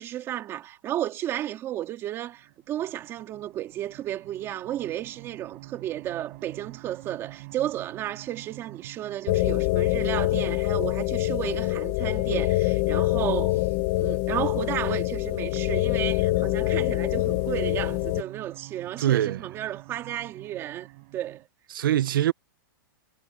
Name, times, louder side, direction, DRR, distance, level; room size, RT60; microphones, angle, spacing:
voice 1, 0.0-13.7 14.0-21.4, right 12 dB, 20° right, 2.6 m, -33 dB
sound 1, 2.0-21.5, right 26 dB, 40° right, 6.2 m, -48 dB
sound 2, 9.3-18.2, left 19 dB, 35° left, 1.1 m, -25 dB
voice 2, 19.0-19.4 21.7-22.3, right 12 dB, 65° right, 0.8 m, -23 dB
hypercardioid pair, 165°, 12 cm